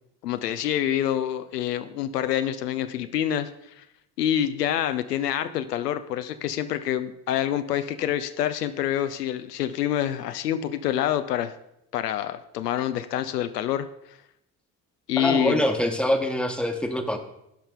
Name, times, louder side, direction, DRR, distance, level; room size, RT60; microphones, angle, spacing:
voice 1, 0.2-3.5 3.8-3.9 4.2-11.5 11.9-13.9 15.1-15.6, left 11 dB, 80° left, 11 dB, 0.5 m, -26 dB
voice 2, 15.2-17.2, left 1 dB, ahead, 6 dB, 1.1 m, -24 dB
16.0 x 5.5 x 3.7 m, 0.81 s
figure-of-eight pair, 50°, 47 cm